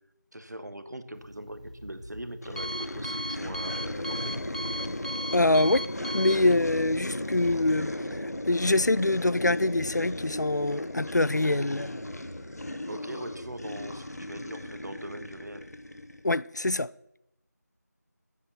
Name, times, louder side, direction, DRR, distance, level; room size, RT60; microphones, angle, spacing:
voice 1, 0.3-4.4 12.9-15.7, right 1 dB, 75° right, 1.3 m, -41 dB
Alarm, 1.1-7.5, equal, 25° right, 0.5 m, -38 dB
sound 1, 2.4-16.3, left 1 dB, 65° left, 1.0 m, -36 dB
voice 2, 5.3-5.9 6.1-7.9 8.2-11.9 16.2-16.9, left 2 dB, 80° left, 0.5 m, -25 dB
11.0 x 8.5 x 5.8 m
figure-of-eight pair, 170°, 9 cm